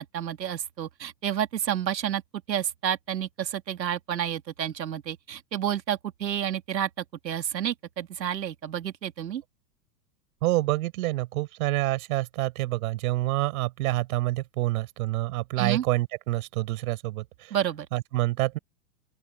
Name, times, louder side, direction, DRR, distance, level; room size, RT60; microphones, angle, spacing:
voice 1, 0.0-2.2 2.5-9.4 15.6-15.8 17.5-17.9, right 10 dB, 85° right, 2.5 m, -30 dB
voice 2, 10.4-17.6 17.9-18.6, right 18 dB, 60° right, 5.6 m, -27 dB
open air
hypercardioid pair, 115°, 50 cm